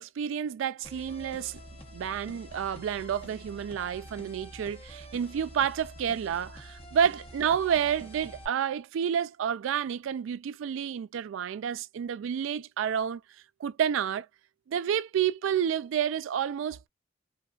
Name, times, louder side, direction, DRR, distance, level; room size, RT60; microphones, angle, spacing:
voice 1, 0.0-1.6 1.9-13.2 13.6-14.3 14.7-16.9, right 8 dB, 85° right, 0.3 m, -30 dB
sound 1, 0.8-8.5, equal, 30° left, 0.8 m, -47 dB
3.1 x 2.3 x 2.3 m
head